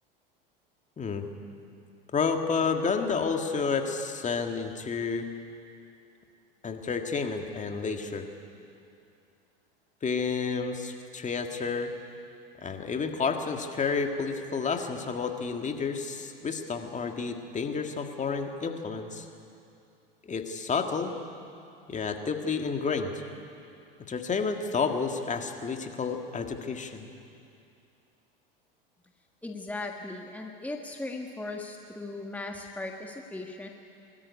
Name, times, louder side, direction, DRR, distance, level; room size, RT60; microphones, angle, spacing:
voice 1, 2.1-5.3 6.6-8.2 10.0-11.9 12.6-19.3 20.2-21.1 21.9-23.2 24.1-27.1, left 5 dB, 25° left, 4 dB, 2.0 m, -30 dB
voice 2, 29.4-33.7, left 2 dB, 5° left, 2 dB, 1.6 m, -38 dB
22.5 x 13.5 x 9.9 m, 2.6 s
hypercardioid pair, 90°, 29 cm